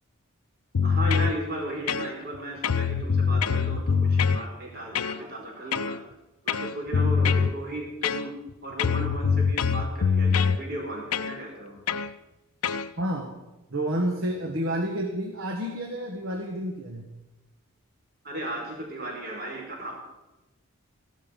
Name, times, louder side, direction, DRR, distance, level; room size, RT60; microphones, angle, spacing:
sound 1, 0.7-1.3 1.9-2.4 2.6-4.4 5.0-5.2 5.7-6.0 6.5-7.5 8.0-8.5 8.8-10.6 11.1-11.3 11.9-12.1 12.6-12.9, left 6 dB, 90° left, 0.6 m, -24 dB
voice 1, 0.8-6.0 6.4-8.3 8.6-11.7 18.2-19.9, right 1 dB, 45° right, -1 dB, 4.9 m, -35 dB
voice 2, 13.0-13.4 13.7-17.1, right 1 dB, 60° right, 3 dB, 1.3 m, -30 dB
15.0 x 12.0 x 5.3 m, 1.0 s
head